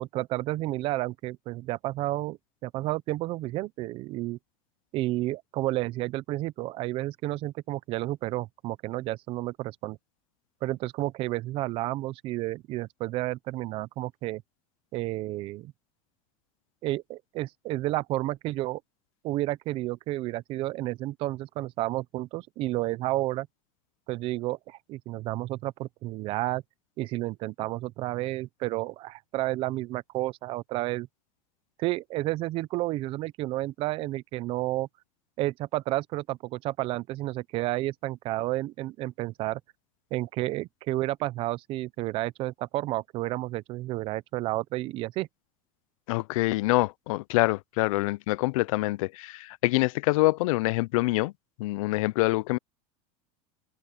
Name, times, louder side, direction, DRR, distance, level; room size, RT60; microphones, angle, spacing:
voice 1, 0.0-4.4 4.9-10.0 10.6-14.4 14.9-15.7 16.8-18.8 19.2-23.5 24.1-26.6 27.0-31.1 31.8-34.9 35.4-39.6 40.1-45.3, right 17 dB, 30° right, 0.5 m, -31 dB
voice 2, 46.1-51.3 51.6-52.6, left 20 dB, 80° left, 0.4 m, -25 dB
supercardioid pair, 170°, 17 cm